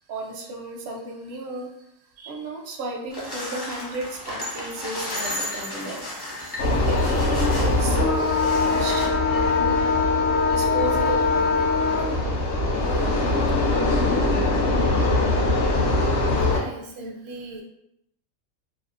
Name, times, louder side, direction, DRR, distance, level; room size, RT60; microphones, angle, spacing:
voice 1, 0.1-1.7 2.2-10.1 10.5-12.4 12.7-15.9 16.3-16.5, right 1 dB, 60° right, 0 dB, 0.6 m, -35 dB
sound 1, 3.1-9.1, left 1 dB, 30° left, 0.4 m, -34 dB
sound 2, 6.6-16.6, left 3 dB, 60° left, 0.7 m, -21 dB
voice 2, 16.2-17.6, right 2 dB, 85° right, 1 dB, 1.0 m, -38 dB
2.7 x 2.0 x 2.4 m, 0.76 s
omnidirectional pair, 1.4 m